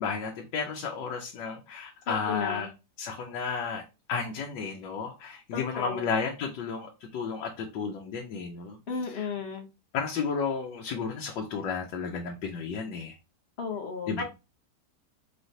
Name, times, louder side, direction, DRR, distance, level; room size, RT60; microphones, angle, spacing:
voice 1, 0.0-2.7 3.0-3.8 4.1-8.8 9.1-9.3 9.9-13.2 14.1-14.2, left 5 dB, 90° left, 1.4 m, -33 dB
voice 2, 2.3-2.7 5.5-6.1 8.9-9.7 13.6-14.2, left 5 dB, 45° left, 1.0 m, -34 dB
4.6 x 3.2 x 2.6 m
omnidirectional pair, 1.9 m